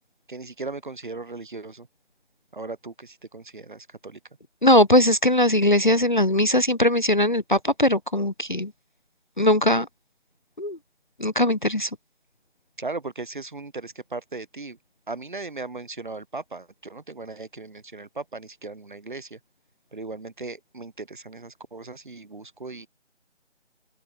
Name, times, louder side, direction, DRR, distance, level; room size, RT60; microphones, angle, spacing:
voice 1, 0.3-1.9 2.5-4.2 12.8-14.8 15.1-19.4 19.9-22.9, right 3 dB, 40° right, 3.4 m, -37 dB
voice 2, 4.6-8.7 9.4-9.9 10.6-10.8 11.2-11.9, left 1 dB, 40° left, 0.6 m, -20 dB
open air
figure-of-eight pair, 170°, 36 cm